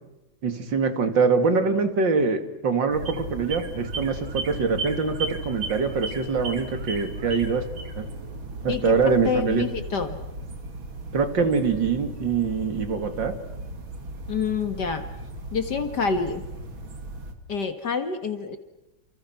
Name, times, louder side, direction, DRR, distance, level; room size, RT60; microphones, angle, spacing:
voice 1, 0.4-7.6 8.0-8.1 8.6-9.7 11.1-13.3, right 5 dB, 65° right, 8 dB, 2.9 m, -24 dB
sound 1, 2.9-17.3, right 2 dB, 90° right, 3.2 m, -36 dB
voice 2, 8.7-10.2 14.3-15.1 15.5-16.4 17.5-18.6, left 5 dB, 60° left, 8 dB, 2.2 m, -27 dB
29.0 x 28.0 x 6.0 m, 0.95 s
omnidirectional pair, 2.1 m